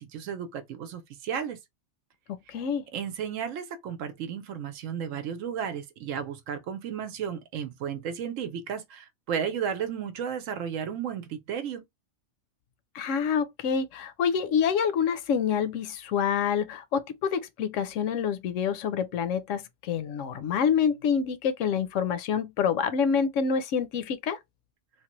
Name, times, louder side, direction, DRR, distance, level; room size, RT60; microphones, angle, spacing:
voice 1, 0.0-1.6 2.9-11.8, right 8 dB, 85° right, 1.0 m, -33 dB
voice 2, 2.3-2.8 12.9-24.4, left 7 dB, 80° left, 0.9 m, -27 dB
3.2 x 2.1 x 2.9 m
omnidirectional pair, 1.3 m